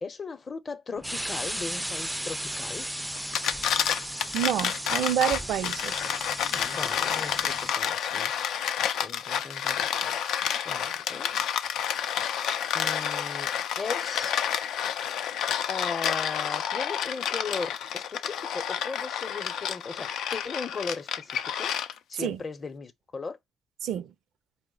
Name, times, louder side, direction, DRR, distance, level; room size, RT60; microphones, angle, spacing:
voice 1, 0.0-2.9 6.4-10.4 10.6-11.3 12.7-14.4 15.7-21.7 22.1-23.4, left 4 dB, 35° left, 0.7 m, -38 dB
sound 1, 1.0-7.7, equal, 5° right, 0.3 m, -35 dB
sound 2, 3.2-22.2, left 9 dB, 80° left, 0.4 m, -29 dB
voice 2, 4.3-6.0 22.2-22.4 23.8-24.1, right 10 dB, 80° right, 0.4 m, -28 dB
4.7 x 2.1 x 3.8 m
cardioid pair, 90°, 0 cm